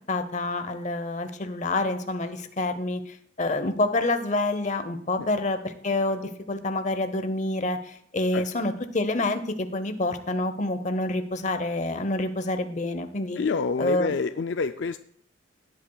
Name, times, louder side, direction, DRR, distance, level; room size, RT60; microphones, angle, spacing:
voice 1, 0.1-13.4 13.8-14.1, left 2 dB, 35° left, 9 dB, 0.8 m, -27 dB
voice 2, 13.4-15.0, left 4 dB, 65° left, 9 dB, 0.4 m, -27 dB
17.5 x 8.6 x 2.3 m, 0.65 s
head